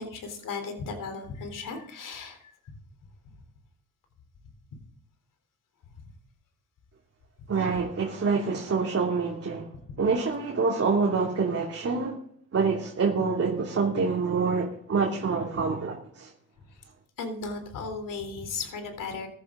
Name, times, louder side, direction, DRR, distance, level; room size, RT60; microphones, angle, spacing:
voice 1, 0.0-2.8 3.3-3.4 4.7-4.8 9.9-10.0 16.7-16.8 17.2-19.3, left 4 dB, 70° left, 3.7 m, -36 dB
voice 2, 7.5-9.7 10.0-12.2 12.5-16.3, right 4 dB, 45° right, 2.8 m, -26 dB
15.0 x 11.5 x 3.8 m
cardioid pair, 70°, 33 cm